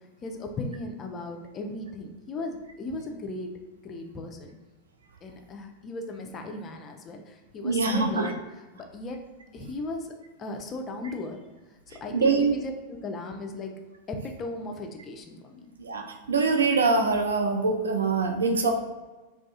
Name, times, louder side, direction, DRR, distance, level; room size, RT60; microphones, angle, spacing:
voice 1, 0.2-3.5 3.8-4.6 5.2-8.4 8.7-9.2 9.5-10.1 10.4-11.4 11.9-13.8 14.1-15.7, left 2 dB, 25° left, 3 dB, 0.3 m, -37 dB
voice 2, 7.6-8.3 12.1-12.5 15.8-18.7, right 4 dB, 70° right, 3 dB, 0.3 m, -24 dB
2.4 x 2.3 x 2.6 m, 1.2 s
figure-of-eight pair, 90°, 0 cm